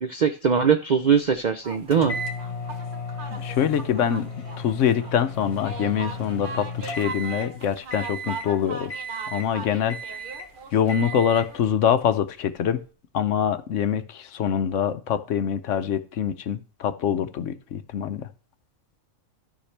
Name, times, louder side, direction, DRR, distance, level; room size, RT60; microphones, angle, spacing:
voice 1, 0.0-2.2, right 6 dB, 65° right, 8 dB, 0.4 m, -21 dB
sound 1, 1.6-11.6, right 3 dB, 40° right, 0.9 m, -40 dB
sound 2, 1.9-7.6 7.9-8.5 8.9-9.6 9.9-10.5 10.9-11.5, left 1 dB, 50° left, 1.6 m, -35 dB
voice 2, 3.3-4.2 4.6-8.9 9.3-10.0 10.7-12.8 13.1-18.3, left 8 dB, 65° left, 11 dB, 0.9 m, -24 dB
13.0 x 5.7 x 3.3 m, 0.37 s
omnidirectional pair, 1.5 m